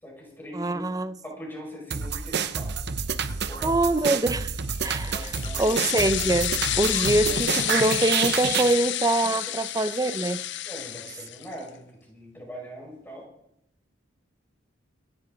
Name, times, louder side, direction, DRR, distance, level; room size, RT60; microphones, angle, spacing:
voice 1, 0.0-0.9 1.2-2.7 3.2-3.8 5.1-5.8 9.2-9.3 10.6-13.3, equal, 10° left, 5.6 m, -41 dB
voice 2, 0.5-1.1 3.6-4.5 4.8-5.3 5.6-10.4, right 2 dB, 20° right, 0.6 m, -24 dB
sound 1, 1.9-8.8, right 6 dB, 55° right, 0.9 m, -29 dB
sound 2, 4.6-11.6, left 13 dB, 60° left, 0.6 m, -30 dB
25.5 x 10.5 x 4.0 m
head